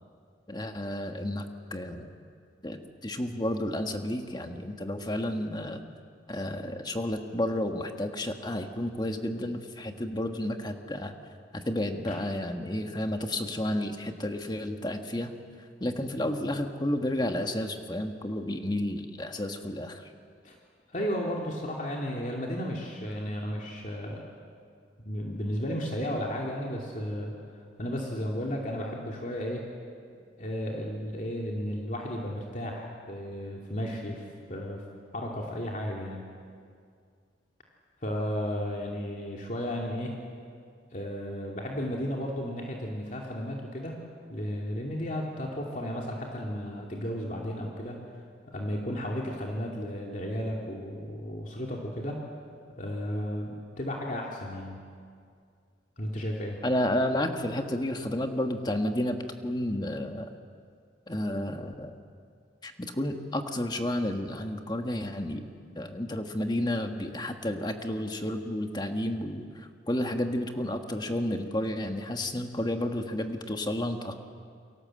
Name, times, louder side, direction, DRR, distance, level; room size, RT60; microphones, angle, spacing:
voice 1, 0.5-2.1 2.6-5.8 6.3-11.1 11.5-15.3 15.8-20.1 56.6-60.3 61.1-61.9 62.6-65.4 65.7-74.1, left 1 dB, 25° left, 5 dB, 1.6 m, -31 dB
voice 2, 20.9-24.2 25.0-27.3 27.8-29.6 30.4-34.2 34.5-34.8 35.1-36.2 38.0-40.2 40.9-44.0 44.3-48.0 48.5-52.3 52.8-54.8 56.0-56.6, equal, 45° left, -1 dB, 2.8 m, -33 dB
29.0 x 24.0 x 7.8 m, 2.3 s
head